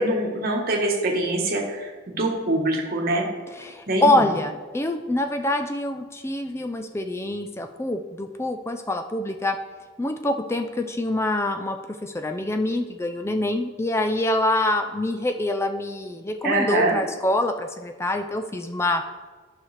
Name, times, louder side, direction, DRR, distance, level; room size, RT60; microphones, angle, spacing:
voice 1, 0.0-3.3 3.9-4.2 16.4-17.0, right 2 dB, 45° right, 0 dB, 1.2 m, -24 dB
voice 2, 3.5-9.6 10.0-19.0, left 1 dB, 10° left, 6 dB, 0.3 m, -25 dB
9.8 x 5.7 x 3.2 m, 1.4 s
head